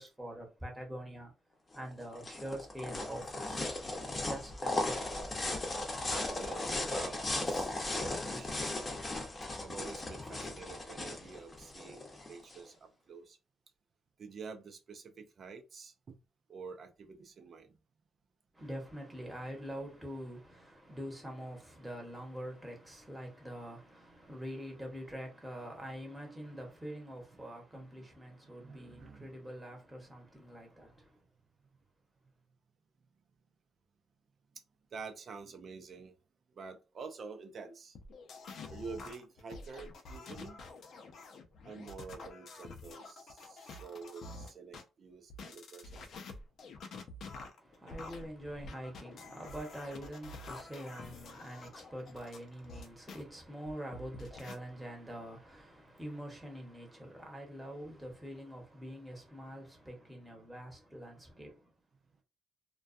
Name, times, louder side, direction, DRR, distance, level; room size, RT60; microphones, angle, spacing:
voice 1, 0.0-1.3 1.7-3.7 4.1-5.4 9.8-9.9 18.5-31.3 47.6-61.7, equal, 5° right, 1.0 m, -45 dB
sound 1, 1.7-12.6, left 2 dB, 30° left, 0.8 m, -37 dB
voice 2, 6.1-7.8 8.1-8.8 9.6-13.4 14.2-16.2 16.5-17.8 27.3-27.4 27.7-28.1 28.4-29.3 34.9-36.2 36.5-38.0 38.7-40.7 41.6-46.1, right 5 dB, 50° right, 0.5 m, -48 dB
sound 2, 37.9-44.8 45.3-53.2 53.7-54.6, left 3 dB, 65° left, 0.5 m, -48 dB
2.2 x 2.2 x 2.5 m
cardioid pair, 90°, 0 cm